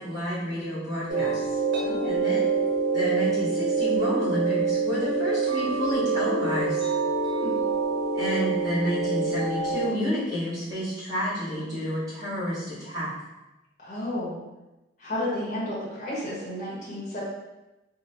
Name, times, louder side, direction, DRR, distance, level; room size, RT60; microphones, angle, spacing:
voice 1, 0.0-1.6 2.0-2.5 2.9-6.8 8.1-13.1, equal, 20° right, -12 dB, 1.4 m, -30 dB
sound 1, 1.1-9.9, right 4 dB, 80° right, 0.7 m, -26 dB
voice 2, 1.8-2.2 7.3-7.6 13.8-14.4 15.0-17.2, left 1 dB, 40° left, -7 dB, 0.9 m, -32 dB
3.1 x 2.1 x 2.8 m, 1.0 s
head